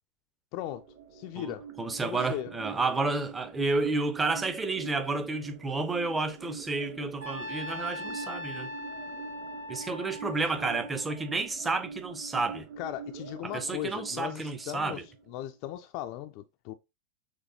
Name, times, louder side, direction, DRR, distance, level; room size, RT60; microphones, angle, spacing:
voice 1, 0.5-0.8 1.1-1.6 2.0-2.5 10.5-10.8 12.8-15.0 15.3-16.7, left 13 dB, 45° left, 0.3 m, -37 dB
sound 1, 0.6-15.6, right 5 dB, 40° right, 0.8 m, -44 dB
voice 2, 1.4-8.7 9.7-12.7 13.4-15.0, right 3 dB, 15° right, 0.6 m, -31 dB
Trumpet, 7.2-11.4, left 1 dB, 80° right, 2.7 m, -40 dB
6.3 x 2.3 x 2.7 m
figure-of-eight pair, 90°, 0 cm